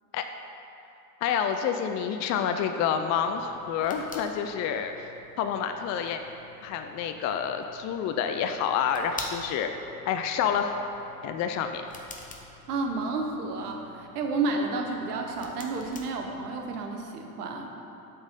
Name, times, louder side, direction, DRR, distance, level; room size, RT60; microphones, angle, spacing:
voice 1, 1.2-5.1 5.4-6.2 6.6-9.7 10.1-10.8 11.2-11.8, left 8 dB, 40° left, 6 dB, 0.4 m, -28 dB
sound 1, 3.3-16.8, left 3 dB, 20° left, 0.9 m, -48 dB
voice 2, 12.7-17.7, right 3 dB, 85° right, 2 dB, 1.0 m, -31 dB
7.9 x 4.4 x 5.2 m, 2.9 s
hypercardioid pair, 75°, 45 cm